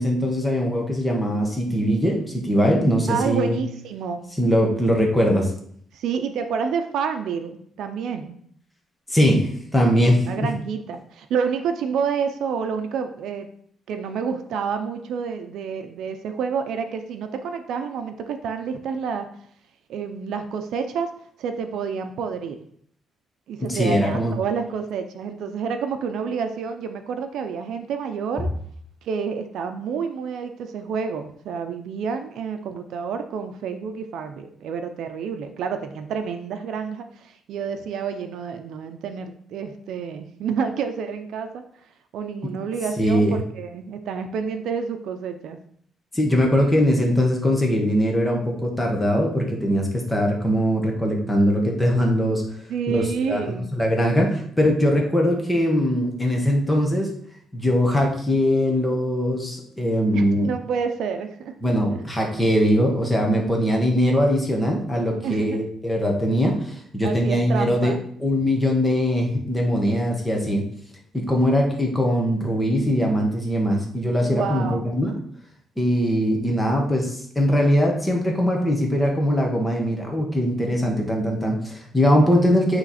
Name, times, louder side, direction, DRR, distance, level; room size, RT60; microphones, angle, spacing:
voice 1, 0.0-3.6 4.4-5.5 9.1-10.5 23.6-24.4 43.0-43.4 46.1-52.4 52.9-57.1 57.5-60.5 61.6-67.9 68.2-70.6 71.1-75.2 75.8-82.8, equal, 10° left, 0 dB, 1.2 m, -21 dB
voice 2, 3.1-4.2 5.9-8.4 10.1-13.5 13.9-19.3 19.9-21.1 21.4-22.6 23.5-28.5 29.0-41.7 42.1-45.6 52.7-53.7 60.1-61.7 65.2-65.7 67.0-68.0 74.2-74.9, right 6 dB, 70° right, 7 dB, 0.6 m, -29 dB
8.7 x 3.2 x 4.2 m, 0.63 s
cardioid pair, 160°, 0 cm